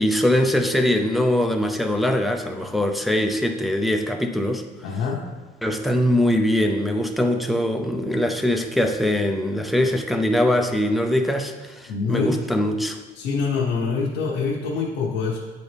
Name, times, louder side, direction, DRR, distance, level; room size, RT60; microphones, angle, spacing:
voice 1, 0.0-4.6 5.6-13.0, left 1 dB, ahead, 4 dB, 0.5 m, -22 dB
voice 2, 4.8-5.2 11.9-12.4 13.1-15.4, left 5 dB, 85° left, -3 dB, 0.9 m, -25 dB
8.4 x 4.0 x 3.4 m, 1.2 s
cardioid pair, 115°, 19 cm